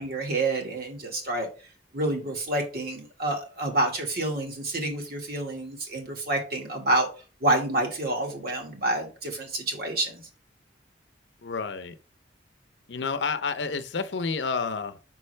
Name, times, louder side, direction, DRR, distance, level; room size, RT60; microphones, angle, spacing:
voice 1, 0.0-1.5 1.9-7.1 7.4-10.2, right 2 dB, 55° right, 1.8 m, -28 dB
voice 2, 11.4-11.9 12.9-15.2, left 4 dB, 80° left, 0.6 m, -30 dB
6.0 x 5.5 x 3.3 m
head